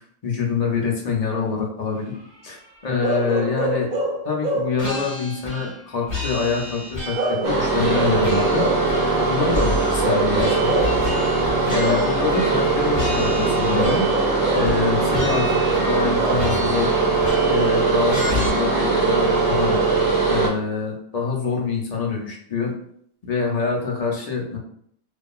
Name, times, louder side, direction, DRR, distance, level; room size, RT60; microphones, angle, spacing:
voice 1, 0.2-2.1 2.4-2.6 2.8-3.9 4.2-8.7 9.3-11.1 11.7-14.0 14.5-16.9 17.4-19.8 20.2-22.7 23.2-24.6, left 5 dB, 50° left, -1 dB, 0.5 m, -25 dB
Bark / Livestock farm animals working animals, 3.0-4.8 7.2-8.9 10.0-11.0 11.8-12.2 13.8-14.8 16.2-16.6, right 1 dB, 45° right, 0.7 m, -25 dB
sound 1, 4.8-5.8 6.1-7.4 7.8-9.2 9.5-12.7 12.9-14.3 14.6-14.8 15.1-16.1 16.4-17.7 18.1-18.5, left 1 dB, 15° left, 1.1 m, -31 dB
sound 2, 7.4-20.5, right 3 dB, 80° right, 1.1 m, -21 dB
2.8 x 2.4 x 2.3 m, 0.66 s
omnidirectional pair, 1.2 m